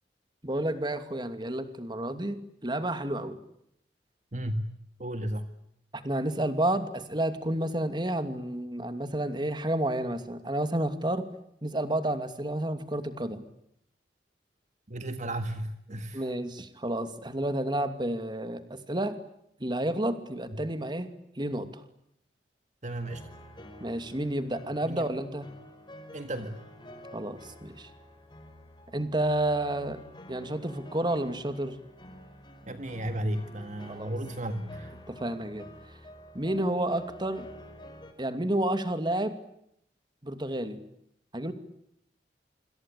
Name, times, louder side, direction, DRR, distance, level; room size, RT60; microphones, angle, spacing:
voice 1, 0.4-3.4 5.9-11.3 11.6-13.4 16.1-19.2 19.6-21.1 21.4-21.7 23.8-25.5 27.1-27.9 28.9-30.0 30.3-31.8 33.9-34.1 35.1-35.7 36.3-37.5 38.2-39.4 40.2-40.8 41.3-41.5, right 1 dB, 25° right, 10 dB, 2.6 m, -30 dB
voice 2, 4.3-4.7 5.0-5.5 14.9-16.3 20.5-20.6 22.8-23.3 24.8-25.1 26.1-26.6 32.7-34.9, right 1 dB, 45° right, 8 dB, 1.8 m, -34 dB
sound 1, 23.0-38.1, equal, 25° left, 4.6 m, -49 dB
27.0 x 26.0 x 8.5 m, 0.76 s
head